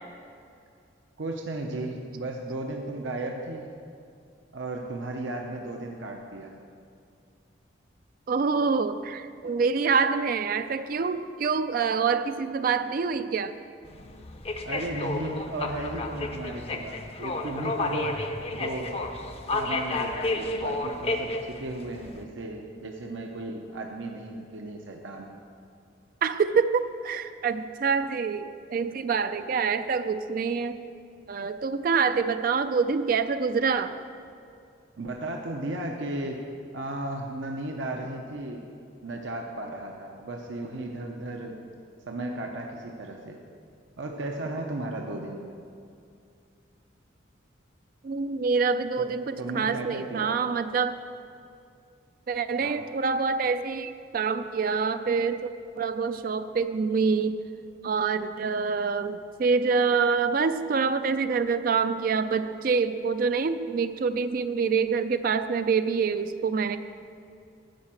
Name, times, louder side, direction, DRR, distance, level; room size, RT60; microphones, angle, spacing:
voice 1, 1.2-3.7 4.5-6.6 14.6-18.2 18.5-18.9 19.5-25.4 35.0-36.4 36.7-38.6 39.0-41.6 42.1-43.4 44.0-45.5 49.0-50.3 52.6-52.8, right 2 dB, 75° right, 1 dB, 0.7 m, -35 dB
voice 2, 8.3-13.6 26.2-30.8 31.3-33.9 48.0-51.0 52.3-57.4 57.8-66.8, right 5 dB, 45° right, 11 dB, 0.3 m, -26 dB
sound 1, 13.9-22.2, left 2 dB, 30° left, 0.6 m, -32 dB
10.5 x 5.6 x 7.6 m, 2.4 s
head